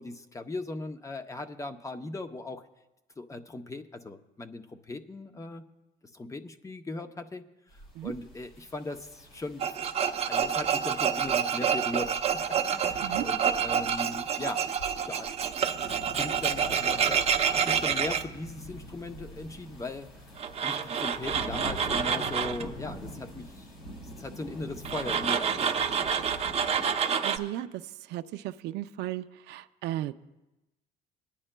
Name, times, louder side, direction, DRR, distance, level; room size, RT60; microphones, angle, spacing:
voice 1, 0.0-2.6 3.2-5.6 6.1-7.4 8.0-9.7 10.2-14.7 15.1-15.3 16.2-20.1 20.6-23.7 24.2-25.7 26.0-26.6, left 2 dB, 20° left, 8 dB, 0.6 m, -39 dB
sound 1, 7.7-27.0, equal, 90° left, 3.3 m, -45 dB
Tools, 9.6-18.2 20.4-22.6 24.9-27.4, right 7 dB, 40° right, 0.7 m, -28 dB
voice 2, 27.2-27.7 28.1-30.1, right 14 dB, 80° right, 8 dB, 0.5 m, -35 dB
22.5 x 10.0 x 2.2 m, 1.0 s
cardioid pair, 110°, 17 cm